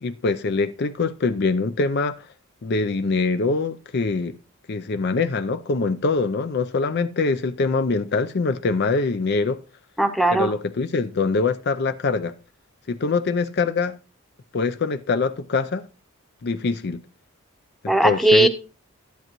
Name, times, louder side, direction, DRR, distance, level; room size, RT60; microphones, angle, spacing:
voice 1, 0.0-2.3 2.6-4.4 4.7-9.6 10.3-12.3 12.9-14.0 14.5-15.8 16.4-17.0 17.8-18.5, left 4 dB, 50° left, 0.5 m, -23 dB
voice 2, 10.0-10.5 17.9-18.5, right 2 dB, ahead, 0.8 m, -17 dB
12.0 x 10.5 x 3.0 m
head